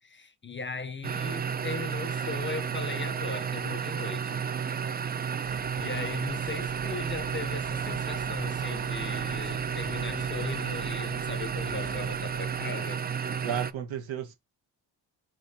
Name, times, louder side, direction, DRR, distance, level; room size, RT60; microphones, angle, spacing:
voice 1, 0.0-4.4 5.3-13.0, left 4 dB, 25° left, 0.6 m, -38 dB
sound 1, 1.0-13.7, right 7 dB, 25° right, 0.3 m, -32 dB
sound 2, 5.4-12.6, right 3 dB, 50° right, 3.2 m, -48 dB
voice 2, 13.3-14.3, right 9 dB, 80° right, 1.4 m, -34 dB
5.1 x 3.1 x 2.7 m
cardioid pair, 70°, 46 cm